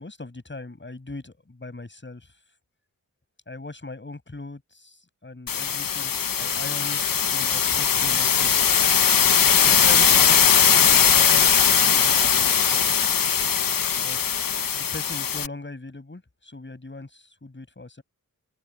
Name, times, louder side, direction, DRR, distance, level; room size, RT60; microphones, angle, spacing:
voice 1, 0.0-2.3 3.5-8.6 9.5-13.2 13.9-14.4 14.7-18.0, left 2 dB, 35° left, 7.3 m, -40 dB
sound 1, 5.5-15.5, left 7 dB, 75° left, 1.0 m, -20 dB
open air
wide cardioid pair, 70°, 34 cm